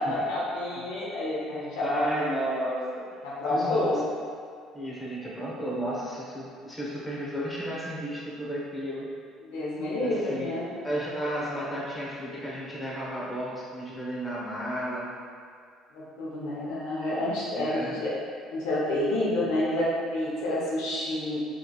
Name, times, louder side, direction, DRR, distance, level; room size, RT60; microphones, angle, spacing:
voice 1, 0.0-2.2 3.2-4.0 9.4-10.7 15.9-18.2 18.5-21.4, left 1 dB, 85° left, -7 dB, 0.9 m, -29 dB
voice 2, 1.8-3.1 3.5-3.8 4.7-9.1 10.0-10.6 10.8-15.1 17.5-18.0 19.0-19.1, right 1 dB, 15° left, -6 dB, 1.0 m, -33 dB
4.1 x 3.2 x 2.4 m, 2.2 s
supercardioid pair, 90°, 0 cm